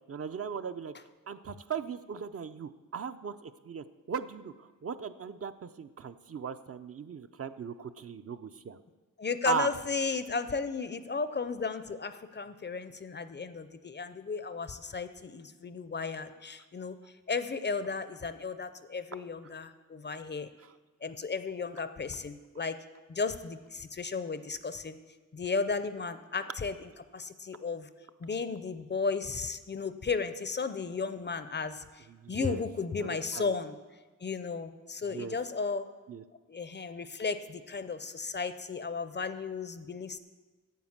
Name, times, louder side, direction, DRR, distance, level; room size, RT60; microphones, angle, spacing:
voice 1, 0.1-0.9 1.3-8.8 9.4-9.7 32.1-32.6 33.0-33.5 35.1-35.4 36.1-36.2, right 6 dB, 45° right, 11 dB, 0.4 m, -38 dB
voice 2, 9.2-16.9 17.3-20.5 21.0-22.8 23.1-25.0 25.3-27.9 28.2-33.8 34.2-35.9 36.5-40.2, left 4 dB, 35° left, 12 dB, 0.5 m, -34 dB
9.4 x 8.1 x 7.2 m, 1.3 s
wide cardioid pair, 175°, 33 cm